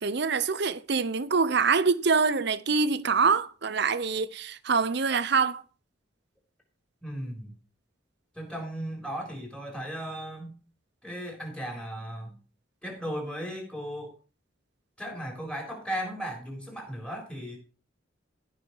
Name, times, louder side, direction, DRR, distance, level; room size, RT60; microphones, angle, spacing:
voice 1, 0.0-5.6, right 5 dB, 60° right, 0.8 m, -25 dB
voice 2, 7.0-7.5 8.3-10.6 11.0-12.4 12.8-14.1 15.0-17.6, equal, 5° left, 4.0 m, -36 dB
15.5 x 5.8 x 4.7 m
head